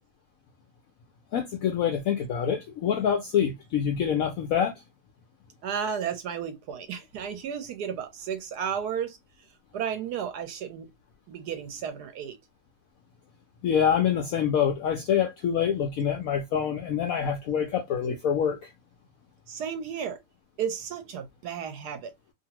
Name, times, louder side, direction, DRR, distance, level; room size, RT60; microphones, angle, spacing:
voice 1, 1.3-4.7 13.6-18.7, left 8 dB, 75° left, 0.8 m, -26 dB
voice 2, 5.6-9.2 9.7-10.9 11.3-12.4 19.5-20.2 20.6-22.1, right 7 dB, 70° right, 1.0 m, -33 dB
2.7 x 2.5 x 2.8 m
omnidirectional pair, 2.0 m